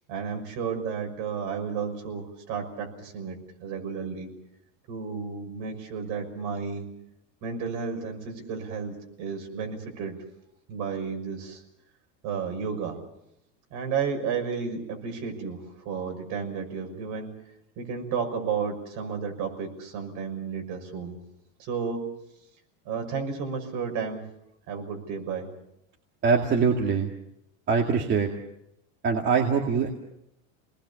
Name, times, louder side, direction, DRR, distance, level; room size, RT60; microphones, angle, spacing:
voice 1, 0.1-4.3 4.9-6.9 7.4-10.2 10.7-11.6 12.2-13.0 13.7-17.3 17.8-21.2 21.6-22.0 22.8-24.2 24.7-25.5, right 6 dB, 55° right, 3 dB, 6.2 m, -32 dB
voice 2, 26.2-27.1 27.7-28.3 29.0-29.9, right 5 dB, 30° right, 2 dB, 2.2 m, -23 dB
30.0 x 20.0 x 7.1 m, 0.80 s
supercardioid pair, 150°, 38 cm